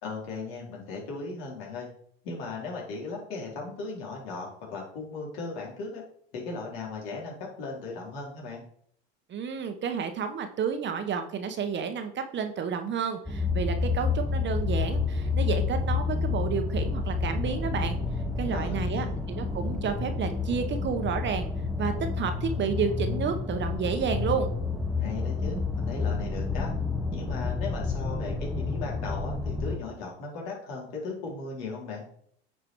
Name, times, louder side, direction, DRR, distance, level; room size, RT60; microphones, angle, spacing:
voice 1, 0.0-1.9 2.2-6.0 6.3-8.6 18.5-19.2 25.0-26.7 27.1-32.0, left 3 dB, 65° left, -2 dB, 4.0 m, -37 dB
voice 2, 9.3-18.0 18.4-21.5 21.8-24.5, right 6 dB, 35° right, 7 dB, 1.2 m, -31 dB
sound 1, 13.3-29.8, left 4 dB, ahead, 1.5 m, -29 dB
9.0 x 5.0 x 4.7 m, 0.62 s
hypercardioid pair, 95°, 32 cm